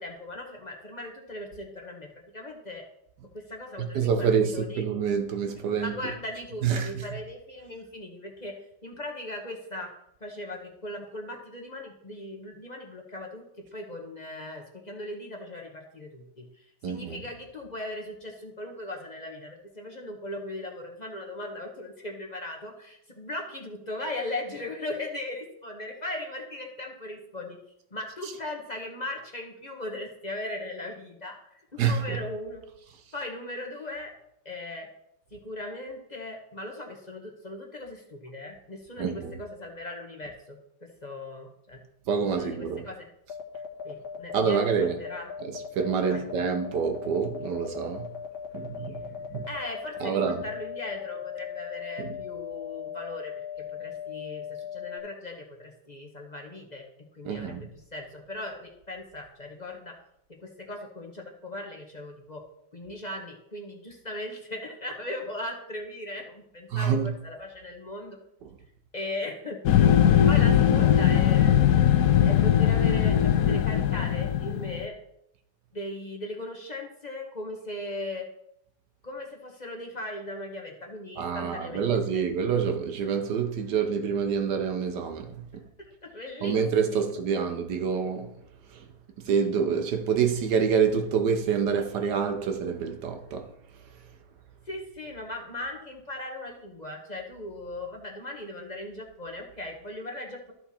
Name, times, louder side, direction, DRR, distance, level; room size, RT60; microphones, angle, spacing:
voice 1, 0.0-2.8 3.3-4.8 5.7-8.5 8.8-9.9 10.2-13.4 13.7-27.6 27.9-32.6 33.1-34.1 34.4-34.9 35.3-41.8 42.4-43.1 43.8-45.3 46.1-46.2 49.5-59.9 60.3-62.4 62.7-68.2 68.9-69.6 70.3-71.7 72.1-75.0 75.7-78.3 79.0-82.2 86.0-86.6 94.7-100.5, left 1 dB, 25° left, 0.9 m, -38 dB
voice 2, 3.8-5.9 6.6-7.1 16.8-17.2 31.8-32.2 39.0-39.3 42.1-42.8 44.3-45.0 45.4-48.1 48.5-49.5 50.0-50.4 52.0-52.2 57.2-57.7 66.7-67.1 81.2-85.6 86.4-88.4 88.7-88.8 89.2-93.5, right 6 dB, 65° right, 1.1 m, -27 dB
sound 1, 43.3-55.0, left 8 dB, 50° left, 1.6 m, -38 dB
sound 2, 69.6-74.8, left 10 dB, 85° left, 0.8 m, -20 dB
13.0 x 4.5 x 4.3 m
omnidirectional pair, 2.4 m